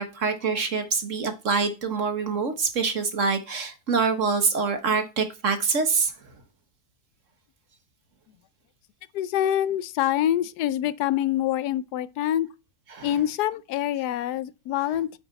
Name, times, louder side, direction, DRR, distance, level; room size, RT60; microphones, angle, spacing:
voice 1, 0.0-6.1 12.9-13.1, right 4 dB, 55° right, 1.7 m, -25 dB
voice 2, 9.1-12.5 13.0-15.2, left 11 dB, 85° left, 1.1 m, -25 dB
9.1 x 6.0 x 4.1 m
omnidirectional pair, 1.7 m